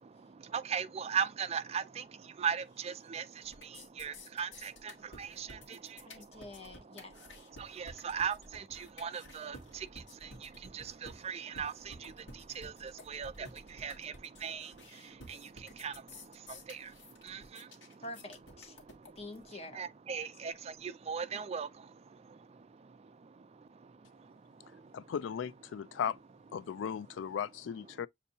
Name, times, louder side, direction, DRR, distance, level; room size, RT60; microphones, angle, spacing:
voice 1, 0.5-2.0 2.4-3.2 4.0-4.7 5.2-5.8 7.6-9.6 10.7-12.1 12.6-13.5 13.8-14.1 14.4-14.7 15.3-15.4 15.8-15.9 16.7-16.8 17.3-17.4 19.8-20.5 20.8-21.7, right 7 dB, 35° right, 0.4 m, -37 dB
sound 1, 2.7-3.2 3.4-19.4, left 1 dB, 70° left, 1.6 m, -52 dB
voice 2, 6.0-7.2 7.9-8.0 18.0-18.8 19.2-19.8, left 1 dB, 35° left, 0.9 m, -47 dB
voice 3, 24.9-26.2 26.5-28.1, left 8 dB, 90° left, 0.3 m, -36 dB
7.0 x 2.7 x 2.7 m
head